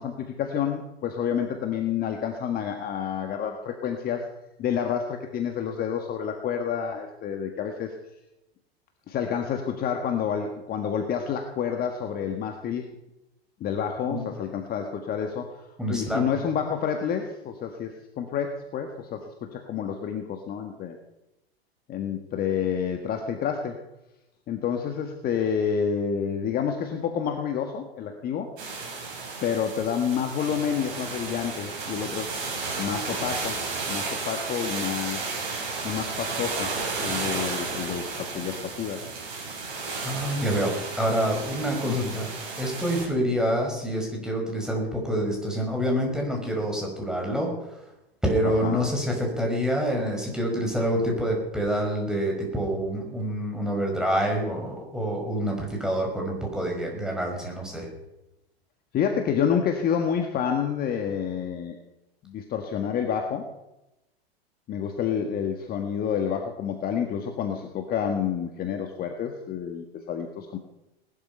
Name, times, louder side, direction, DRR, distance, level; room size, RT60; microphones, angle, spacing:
voice 1, 0.0-4.3 4.6-7.9 9.1-12.9 13.6-21.0 21.9-23.8 24.5-28.5 29.4-32.4 32.8-33.6 33.9-35.2 35.8-39.0 41.9-42.2 48.4-48.8 58.9-61.8 62.2-63.5 64.7-70.6, left 7 dB, 30° left, 5 dB, 1.7 m, -29 dB
voice 2, 15.8-16.2 40.0-42.3 42.6-47.6 48.2-57.9, equal, ahead, 0 dB, 5.6 m, -27 dB
sound 1, 28.6-43.1, right 4 dB, 55° right, 7.1 m, -33 dB
19.0 x 12.0 x 5.6 m, 0.93 s
hypercardioid pair, 105°, 31 cm